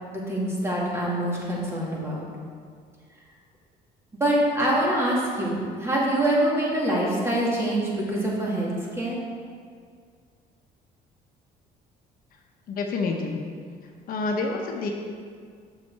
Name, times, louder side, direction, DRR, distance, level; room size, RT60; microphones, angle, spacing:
voice 1, 0.1-2.3 4.2-9.2, right 1 dB, 15° right, -5 dB, 2.2 m, -25 dB
voice 2, 12.7-13.4 14.1-14.9, left 3 dB, 60° left, 1 dB, 0.9 m, -28 dB
7.0 x 6.6 x 4.6 m, 2.1 s
cardioid pair, 110°, 17 cm